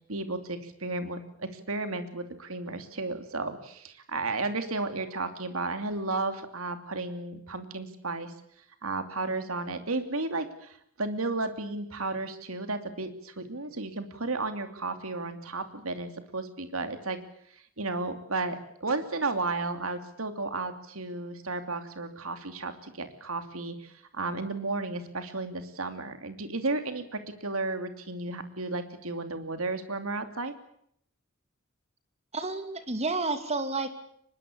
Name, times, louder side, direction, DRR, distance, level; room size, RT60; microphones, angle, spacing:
voice 1, 0.1-8.3 8.8-17.2 17.5-30.5, right 3 dB, 75° right, 8 dB, 2.9 m, -33 dB
voice 2, 32.3-33.9, right 3 dB, 30° right, 9 dB, 2.8 m, -30 dB
24.5 x 22.0 x 8.6 m, 0.69 s
head